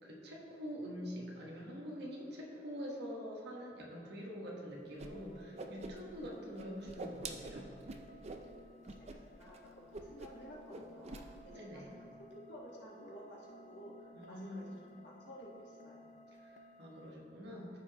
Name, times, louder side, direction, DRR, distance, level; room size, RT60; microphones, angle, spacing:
voice 1, 0.0-7.7 11.5-11.9 14.1-14.8 16.3-17.8, equal, 65° right, -2 dB, 1.3 m, -45 dB
Whoosh swoosh swish, 5.0-5.1 5.4-6.3 6.6-8.4 8.8-9.2 9.4-9.6 9.9-10.4 10.7-11.2, right 3 dB, 35° right, 0.5 m, -45 dB
sound 1, 5.1-17.1, equal, 40° left, 0.4 m, -59 dB
voice 2, 9.0-14.7 15.0-16.1, equal, 75° left, -4 dB, 1.6 m, -53 dB
13.5 x 4.8 x 3.0 m, 2.5 s
head